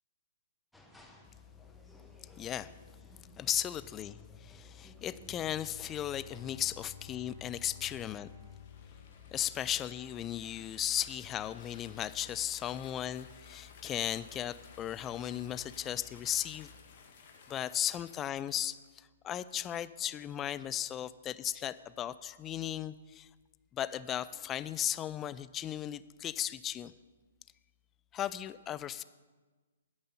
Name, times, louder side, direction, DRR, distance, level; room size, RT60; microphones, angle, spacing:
sound 1, 0.7-6.8, left 1 dB, ahead, 1.0 m, -58 dB
voice 1, 2.4-2.8 3.4-8.3 9.3-16.7 17.5-23.3 23.7-26.9 28.1-29.0, left 11 dB, 20° left, 14 dB, 0.4 m, -36 dB
Bowed string instrument, 5.2-10.1, left 8 dB, 45° right, 1.4 m, -53 dB
sound 2, 8.1-18.9, left 5 dB, 50° left, 1.4 m, -57 dB
12.5 x 5.5 x 7.0 m, 1.3 s
figure-of-eight pair, 125°, 0 cm